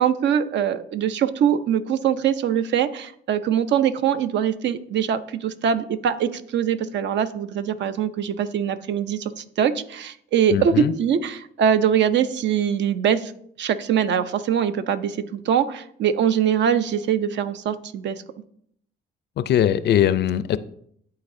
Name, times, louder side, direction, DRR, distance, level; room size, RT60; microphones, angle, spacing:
voice 1, 0.0-13.3 13.6-18.2, right 8 dB, 65° right, 0.5 m, -22 dB
voice 2, 10.5-10.9 19.4-20.6, left 10 dB, 60° left, 0.4 m, -20 dB
11.5 x 4.0 x 2.6 m
cardioid pair, 90°, 20 cm